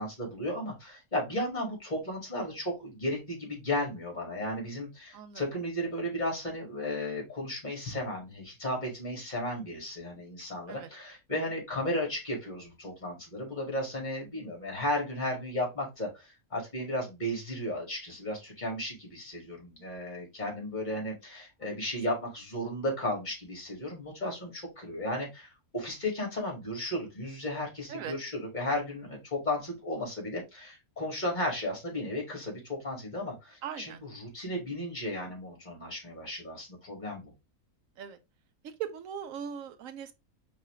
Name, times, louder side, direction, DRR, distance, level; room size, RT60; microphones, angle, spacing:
voice 1, 0.0-37.3, left 1 dB, 30° left, 2.2 m, -34 dB
voice 2, 33.6-34.0 38.0-38.2 38.6-40.1, right 8 dB, 70° right, 1.0 m, -39 dB
4.7 x 3.3 x 3.1 m
omnidirectional pair, 1.5 m